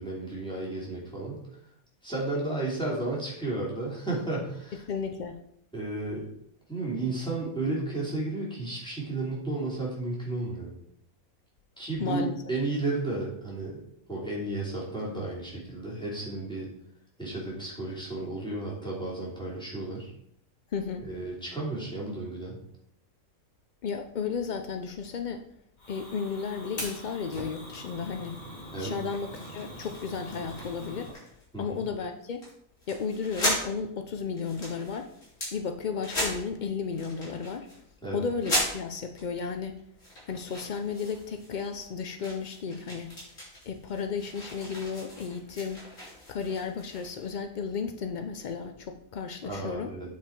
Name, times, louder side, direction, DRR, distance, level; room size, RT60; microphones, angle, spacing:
voice 1, 0.0-1.4 2.0-4.8 5.7-6.3 6.7-10.7 11.8-13.8 14.1-16.7 17.2-20.1 21.1-22.6 28.7-29.0 31.5-31.8 38.0-38.2 49.4-50.2, right 2 dB, 5° left, -6 dB, 2.9 m, -33 dB
voice 2, 4.9-5.4 12.0-12.4 20.7-21.1 23.8-25.4 25.9-28.4 28.8-31.1 31.6-32.4 32.9-35.1 35.5-37.7 38.1-39.8 40.3-43.2 43.7-45.8 46.3-49.9, left 5 dB, 80° left, 7 dB, 0.4 m, -33 dB
Fire, 25.8-31.1, equal, 30° left, 2.1 m, -42 dB
sound 1, 29.0-31.4 31.7-32.0 32.4-32.5 32.8-33.7 34.1-35.5 36.0-36.6 36.9-37.8 38.4-39.2 39.8-41.9 42.2-47.3, equal, 60° left, 4.1 m, -36 dB
9.3 x 5.0 x 4.4 m, 0.72 s
omnidirectional pair, 1.5 m